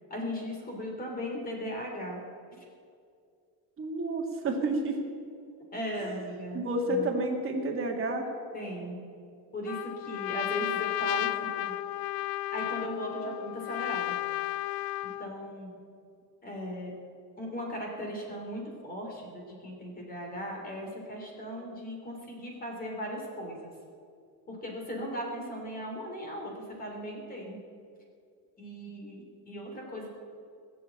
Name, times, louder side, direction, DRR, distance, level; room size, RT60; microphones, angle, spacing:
voice 1, 0.1-2.2 5.7-7.1 8.5-9.0 9.5-11.7 12.5-14.1 15.0-15.7 16.4-16.9 17.4-23.7 24.5-27.6 28.6-30.1, equal, 25° left, 0 dB, 3.0 m, -37 dB
voice 2, 3.8-5.0 6.5-8.3, right 2 dB, 35° right, 2 dB, 1.9 m, -30 dB
Trumpet, 9.7-15.3, left 17 dB, 70° left, 0.5 m, -33 dB
20.5 x 7.0 x 8.7 m, 2.3 s
cardioid pair, 170°, 37 cm